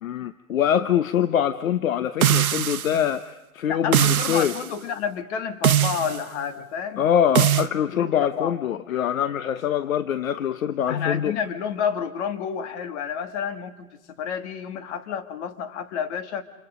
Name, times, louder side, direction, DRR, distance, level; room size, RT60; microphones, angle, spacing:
voice 1, 0.0-4.5 7.0-11.3, left 9 dB, 70° left, 12 dB, 1.0 m, -24 dB
sound 1, 2.2-3.0 3.9-4.6 5.6-6.2 7.3-7.7, right 10 dB, 80° right, 0.9 m, -21 dB
voice 2, 3.7-7.0 7.9-8.6 10.9-16.4, left 7 dB, 50° left, 8 dB, 2.3 m, -30 dB
29.0 x 28.0 x 5.1 m, 0.96 s
hypercardioid pair, 115°, 42 cm